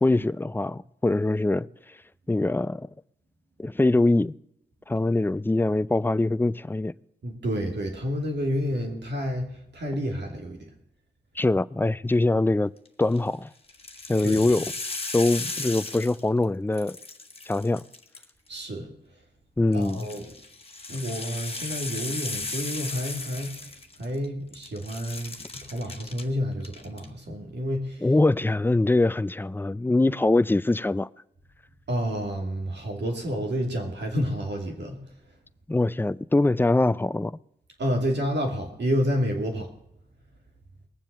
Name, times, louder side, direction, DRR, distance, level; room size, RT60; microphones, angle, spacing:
voice 1, 0.0-1.7 2.3-2.9 3.6-4.3 4.9-6.9 11.4-12.7 13.0-13.5 14.1-14.6 15.1-17.0 17.5-17.8 19.6-20.1 28.0-31.1 35.7-37.3, left 2 dB, 10° left, 0.5 m, -23 dB
voice 2, 7.2-10.7 14.2-14.5 18.5-18.9 19.7-20.3 20.9-23.7 24.0-28.1 31.9-35.0 37.8-39.7, equal, 80° right, 2.6 m, -29 dB
sound 1, 12.9-13.2 13.7-16.4 16.7-18.6 19.7-24.3 24.5-26.2 26.6-27.1, left 3 dB, 35° left, 1.5 m, -36 dB
19.5 x 7.4 x 6.8 m
cardioid pair, 45°, 18 cm